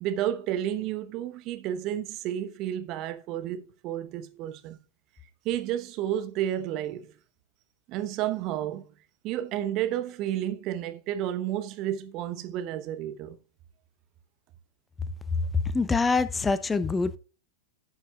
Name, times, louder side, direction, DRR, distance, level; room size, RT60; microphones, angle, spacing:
voice 1, 0.0-4.8 5.4-7.1 7.9-8.9 9.2-13.4, right 11 dB, 40° right, 1.0 m, -31 dB
voice 2, 15.7-17.2, left 4 dB, 15° left, 0.6 m, -25 dB
15.5 x 6.1 x 2.3 m
figure-of-eight pair, 90°, 0 cm